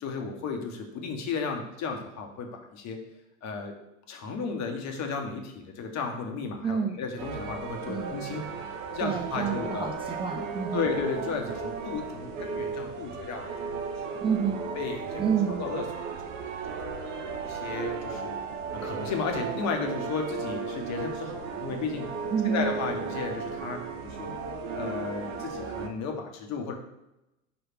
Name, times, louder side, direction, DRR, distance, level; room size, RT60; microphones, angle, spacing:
voice 1, 0.0-3.0 3.4-3.7 4.1-8.5 8.9-10.0 10.7-13.7 14.0-14.2 14.7-15.9 16.4-16.9 17.4-18.4 18.7-22.1 22.4-24.3 24.8-26.8, left 5 dB, 45° left, 4 dB, 1.2 m, -34 dB
voice 2, 6.6-7.0 7.9-8.2 9.0-10.9 14.2-14.6 15.2-15.6 22.3-22.7, right 7 dB, 15° right, 2 dB, 0.4 m, -29 dB
sound 1, 7.2-25.9, right 5 dB, 70° right, 0.9 m, -35 dB
5.7 x 3.3 x 5.7 m, 0.91 s
hypercardioid pair, 75°, 39 cm